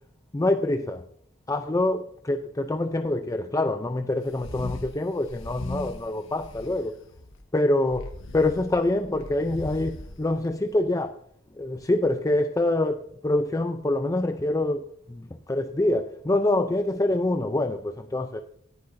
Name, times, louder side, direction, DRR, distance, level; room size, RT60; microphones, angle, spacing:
voice 1, 0.3-1.0 1.5-7.0 7.5-11.2 11.6-18.4, left 2 dB, 15° left, 0.5 m, -25 dB
sound 1, 4.3-4.9 5.2-7.4 7.9-10.8, left 1 dB, 85° left, 1.4 m, -39 dB
17.5 x 10.5 x 2.6 m
head